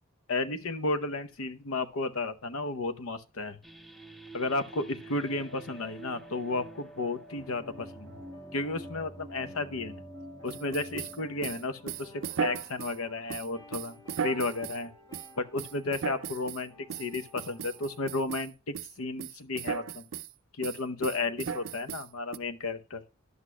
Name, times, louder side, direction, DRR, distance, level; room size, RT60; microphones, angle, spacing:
voice 1, 0.3-3.6 4.3-8.2 8.5-10.0 10.4-14.9 15.4-16.7 17.0-20.1 20.6-23.0, left 3 dB, 75° left, 0.8 m, -33 dB
sound 1, 3.6-13.0, right 1 dB, ahead, 0.5 m, -48 dB
sound 2, 5.2-18.3, right 1 dB, 20° left, 1.4 m, -52 dB
sound 3, 10.5-13.0 13.3-14.8 15.1-15.3 15.6-16.6 16.9-18.5 18.7-18.9 19.2-20.3 20.6-22.4, right 7 dB, 65° right, 0.4 m, -36 dB
11.0 x 8.0 x 2.2 m
head